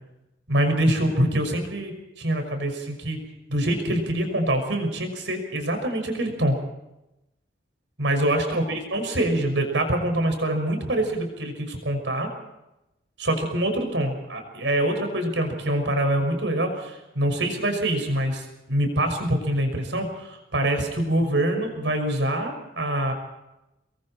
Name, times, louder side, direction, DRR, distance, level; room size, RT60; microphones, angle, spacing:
voice 1, 0.5-3.2 3.5-6.6 8.0-12.3 13.2-23.1, right 1 dB, 75° right, 5 dB, 5.9 m, -25 dB
28.0 x 22.0 x 4.4 m, 0.92 s
head